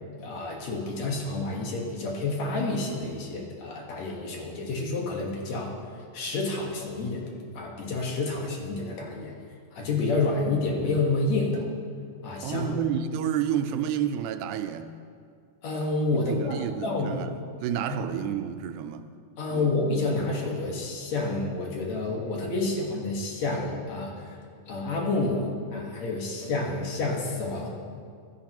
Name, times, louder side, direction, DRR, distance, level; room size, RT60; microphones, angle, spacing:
voice 1, 0.2-5.7 6.1-9.3 9.7-11.6 12.2-12.6 15.6-17.2 19.4-24.4 24.7-27.7, left 3 dB, 65° left, 2.8 m, -29 dB
voice 2, 12.4-15.0 16.1-19.1 19.5-19.7, right 9 dB, 90° right, 2.1 m, -30 dB
16.5 x 12.5 x 3.0 m
omnidirectional pair, 3.4 m